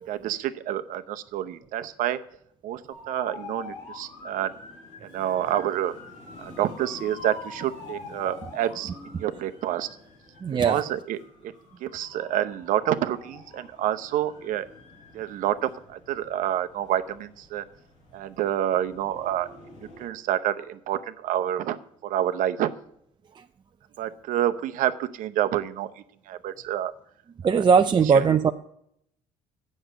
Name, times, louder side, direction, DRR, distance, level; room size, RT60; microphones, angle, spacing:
voice 1, 0.1-2.2 2.6-2.8 3.1-4.5 5.0-5.9 6.4-8.9 9.2-9.9 10.7-11.5 11.8-14.7 15.1-17.6 18.1-19.5 19.8-21.8 22.0-22.7 24.0-25.9 26.3-26.9 28.1-28.2, right 11 dB, 70° right, 10 dB, 0.7 m, -28 dB
sound 1, 2.9-20.1, left 3 dB, 90° left, 3.4 m, -46 dB
voice 2, 10.4-10.8 23.4-23.5 27.4-28.5, right 6 dB, 30° right, 7 dB, 0.5 m, -20 dB
8.0 x 6.4 x 7.8 m, 0.71 s
supercardioid pair, 75°, 14 cm